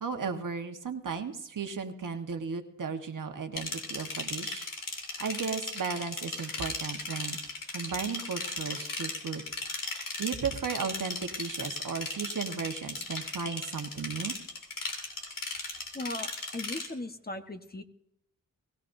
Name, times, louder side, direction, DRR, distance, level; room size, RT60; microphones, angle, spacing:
voice 1, 0.0-4.7 5.2-7.4 7.7-9.4 10.2-14.3, right 5 dB, 70° right, 5 dB, 1.4 m, -35 dB
sound 1, 3.6-16.9, left 3 dB, 80° left, 2.7 m, -37 dB
voice 2, 15.9-17.8, left 2 dB, 30° left, 6 dB, 1.3 m, -38 dB
22.0 x 15.0 x 2.7 m, 0.78 s
cardioid pair, 45°, 32 cm